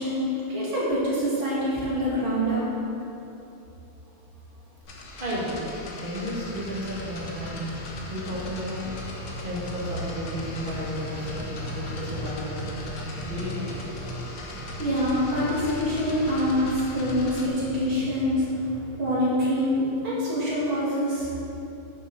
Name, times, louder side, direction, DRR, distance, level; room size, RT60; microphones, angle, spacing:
voice 1, 0.0-2.6 14.5-18.5 19.0-21.3, equal, 80° right, -8 dB, 3.6 m, -25 dB
sound 1, 4.8-17.5, left 2 dB, 60° left, 1.8 m, -40 dB
voice 2, 4.9-5.7 6.0-7.6 8.1-9.0 9.4-13.9, equal, 25° right, -6 dB, 2.4 m, -33 dB
sound 2, 6.3-19.4, equal, 50° right, 1.5 m, -38 dB
9.8 x 6.4 x 6.4 m, 3.0 s
omnidirectional pair, 2.2 m